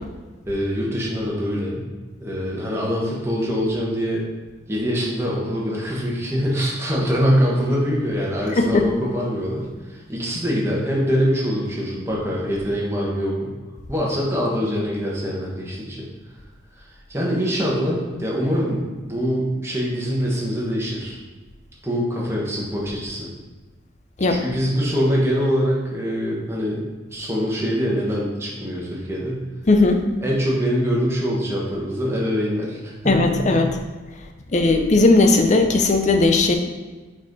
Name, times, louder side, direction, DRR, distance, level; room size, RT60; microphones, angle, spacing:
voice 1, 0.4-1.8 2.2-4.2 4.7-13.5 13.9-16.1 16.8-21.2 21.8-23.3 24.3-26.9 27.1-29.4 30.2-33.6, equal, 15° right, -4 dB, 1.2 m, -24 dB
voice 2, 8.6-8.9 24.2-24.4 29.7-30.0 33.0-33.7 34.5-36.5, left 2 dB, 35° left, 5 dB, 0.5 m, -17 dB
5.8 x 4.4 x 4.0 m, 1.3 s
head